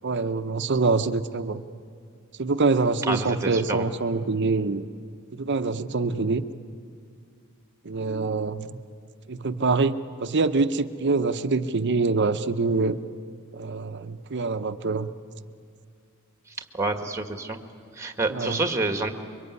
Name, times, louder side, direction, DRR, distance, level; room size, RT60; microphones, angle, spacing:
voice 1, 0.0-1.6 2.4-4.9 5.3-6.5 7.8-8.8 9.3-13.0 13.5-15.1 18.3-18.6, right 3 dB, 55° right, 11 dB, 0.8 m, -25 dB
voice 2, 3.1-3.8 16.7-17.6 18.0-19.1, right 2 dB, 15° right, 7 dB, 1.6 m, -28 dB
27.0 x 23.0 x 9.6 m, 2.2 s
head